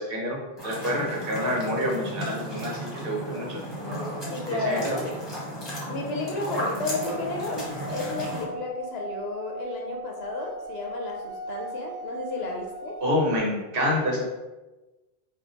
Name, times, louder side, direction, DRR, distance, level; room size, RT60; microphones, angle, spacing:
voice 1, 0.0-3.6 4.5-5.0 13.0-14.3, left 1 dB, 65° right, -2 dB, 1.1 m, -27 dB
sound 1, 0.6-8.5, equal, 25° left, 1.1 m, -34 dB
voice 2, 4.3-4.9 5.9-13.0, left 3 dB, 80° left, 0 dB, 0.9 m, -32 dB
Singing / Glass, 6.8-13.4, right 3 dB, 50° left, 0.8 m, -39 dB
3.5 x 2.3 x 3.9 m, 1.1 s
omnidirectional pair, 1.0 m